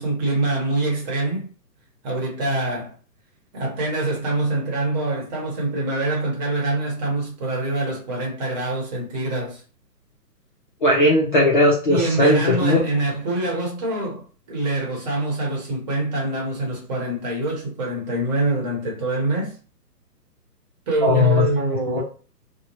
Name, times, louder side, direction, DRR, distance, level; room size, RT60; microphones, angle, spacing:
voice 1, 0.0-1.5 2.0-2.9 3.5-9.6 11.9-14.2 14.5-19.5 20.9-22.0, right 2 dB, 25° right, 1.0 m, -25 dB
voice 2, 10.8-12.8 21.0-21.5 21.9-22.0, left 1 dB, 30° left, 0.5 m, -17 dB
2.8 x 2.1 x 2.9 m
hypercardioid pair, 140°, 49 cm